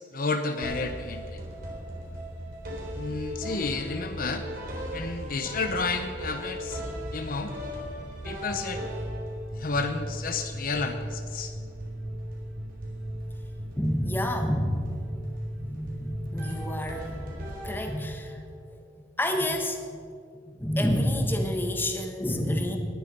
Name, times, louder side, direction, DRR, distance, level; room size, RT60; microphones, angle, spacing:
voice 1, 0.1-1.4 2.9-4.4 4.9-6.8 7.1-7.5 8.2-8.8 9.6-11.5, left 3 dB, 55° left, 7 dB, 0.8 m, -31 dB
sound 1, 0.6-18.4, equal, 55° right, 3.9 m, -37 dB
voice 2, 13.7-15.3 15.5-18.4 18.7-18.8 19.2-20.0 20.3-22.8, left 1 dB, 10° left, 4 dB, 1.4 m, -29 dB
19.0 x 11.5 x 5.4 m, 2.3 s
head